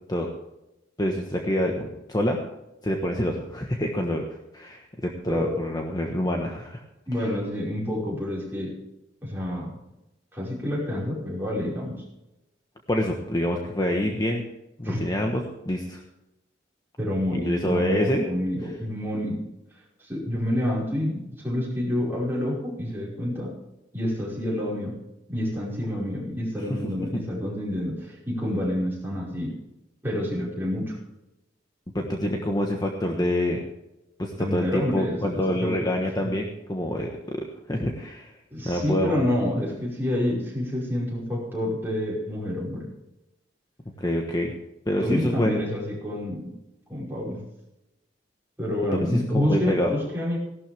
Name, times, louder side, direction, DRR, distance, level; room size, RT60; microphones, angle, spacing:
voice 1, 1.0-2.4 2.8-4.2 4.5-6.8 12.9-14.4 14.8-16.0 17.3-18.2 27.1-27.2 31.9-33.7 34.2-37.4 37.7-38.3 38.6-39.2 44.0-44.5 44.9-45.6 49.0-49.9, left 1 dB, 20° left, 1 dB, 1.2 m, -26 dB
voice 2, 5.3-5.7 7.1-8.8 9.2-9.7 10.3-12.0 14.8-15.0 17.0-19.5 20.0-23.6 23.9-25.0 25.3-29.5 30.0-31.0 34.4-35.9 36.2-36.3 38.5-42.9 45.0-46.5 46.9-47.4 48.6-50.4, left 1 dB, 10° right, -5 dB, 5.2 m, -28 dB
16.5 x 12.0 x 3.5 m, 0.92 s
head